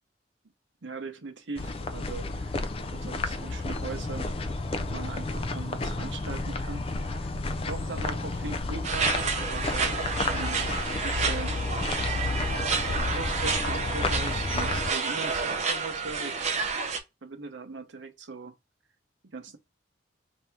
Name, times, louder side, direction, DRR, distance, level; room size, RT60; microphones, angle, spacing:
voice 1, 0.8-2.6 2.9-4.3 4.8-7.3 7.7-10.0 10.3-11.6 12.9-16.5 17.2-18.5 19.3-19.6, right 4 dB, 80° right, 0.8 m, -40 dB
sound 1, 1.6-14.9, left 3 dB, 30° left, 0.4 m, -31 dB
sound 2, 8.8-17.0, right 5 dB, 35° right, 0.6 m, -30 dB
3.3 x 2.7 x 4.5 m
head